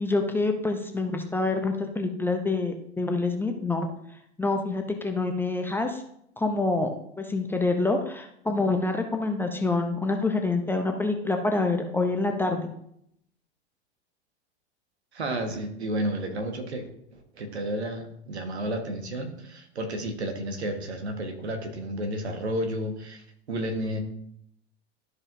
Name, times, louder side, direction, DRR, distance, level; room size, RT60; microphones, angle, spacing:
voice 1, 0.0-3.9 4.4-6.0 6.4-12.7, left 3 dB, 5° left, 4 dB, 0.6 m, -26 dB
voice 2, 15.1-24.0, right 1 dB, 70° right, 5 dB, 1.5 m, -32 dB
13.0 x 4.9 x 2.7 m, 0.72 s
figure-of-eight pair, 95°, 34 cm